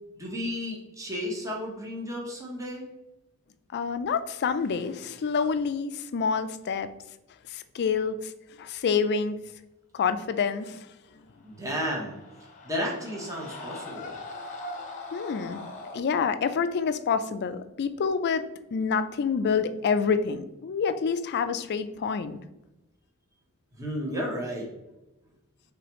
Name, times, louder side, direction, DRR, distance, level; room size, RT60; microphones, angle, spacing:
voice 1, 0.1-2.9 11.4-12.2 12.6-14.1 23.8-24.7, equal, 15° right, -2 dB, 0.9 m, -33 dB
voice 2, 3.7-6.9 7.5-8.2 8.6-9.4 9.9-10.8 15.1-15.6 15.9-18.5 18.7-22.4, left 5 dB, 50° left, 11 dB, 0.4 m, -27 dB
sound 1, 11.5-16.0, left 2 dB, 35° left, 0.9 m, -41 dB
4.8 x 3.4 x 3.0 m, 0.99 s
head